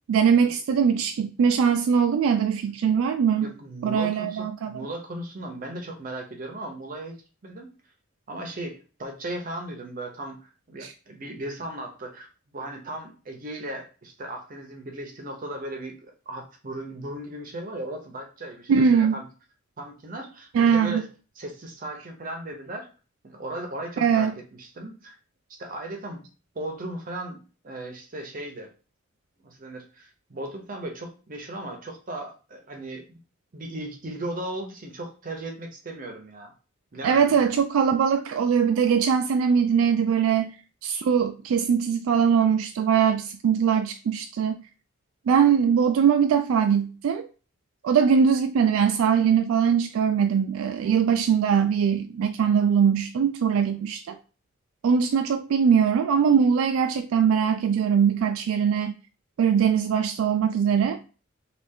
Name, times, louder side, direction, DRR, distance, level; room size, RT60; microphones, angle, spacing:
voice 1, 0.1-3.5 3.8-4.9 10.8-10.9 18.7-19.1 20.5-21.0 24.0-24.3 37.0-40.5 40.8-44.6 45.3-47.3 47.8-54.2 54.8-58.9 59.4-61.0, right 7 dB, 80° right, 0.3 m, -21 dB
voice 2, 3.4-7.2 7.4-7.7 8.3-10.4 10.7-12.3 12.5-19.3 19.8-21.1 21.4-22.9 23.2-25.2 25.5-26.2 26.5-28.7 29.4-33.2 33.5-36.5 36.9-37.4, right 1 dB, 40° right, 0.6 m, -37 dB
3.2 x 2.3 x 3.5 m
head